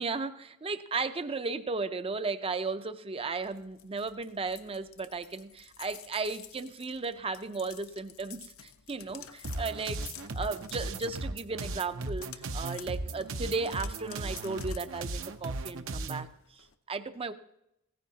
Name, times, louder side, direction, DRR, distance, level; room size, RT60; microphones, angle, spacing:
voice 1, 0.0-10.1 10.3-17.3, right 4 dB, 25° right, 10 dB, 0.6 m, -35 dB
sound 1, 3.4-16.7, left 11 dB, 65° left, 0.7 m, -52 dB
sound 2, 9.4-16.3, right 2 dB, 65° right, 0.8 m, -37 dB
16.5 x 14.5 x 2.8 m, 0.84 s
head